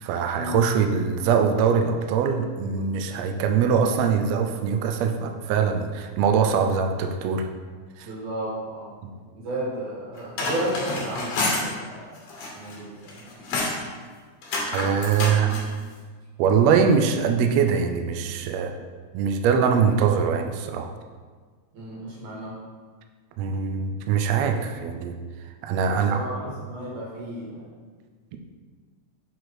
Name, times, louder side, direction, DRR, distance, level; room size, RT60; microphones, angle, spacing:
voice 1, 0.0-7.5 8.0-8.1 9.0-9.1 14.7-15.6 16.4-18.7 19.1-20.9 23.4-25.2 25.6-26.2, right 6 dB, 90° right, 5 dB, 1.5 m, -22 dB
voice 2, 8.0-8.9 9.4-12.2 12.5-13.2 21.7-22.5 25.8-27.7, right 1 dB, 65° right, -6 dB, 3.2 m, -33 dB
sound 1, 10.2-11.7 12.2-12.8 13.1-13.8 14.4-15.7, left 2 dB, 65° left, 2.1 m, -28 dB
6.1 x 4.8 x 4.7 m, 1.5 s
omnidirectional pair, 3.6 m